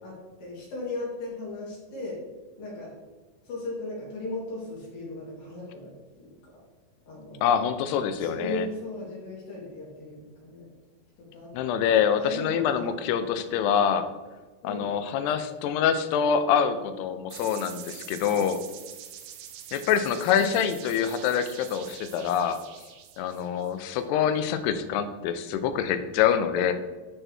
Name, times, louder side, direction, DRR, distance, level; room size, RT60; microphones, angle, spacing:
voice 1, 0.0-2.2 2.6-2.9 3.4-5.9 6.2-6.3 7.1-7.5 8.1-10.7 11.2-11.5 12.2-13.2 14.6-14.9 20.4-20.6 26.7-26.8, left 2 dB, 60° left, -5 dB, 3.8 m, -37 dB
voice 2, 7.4-8.6 11.5-14.1 14.6-18.6 19.7-22.6 23.2-26.7, left 8 dB, 90° left, 10 dB, 2.7 m, -25 dB
sound 1, 17.3-24.0, right 9 dB, 80° right, 2.5 m, -45 dB
11.0 x 4.5 x 3.3 m, 1.2 s
omnidirectional pair, 4.6 m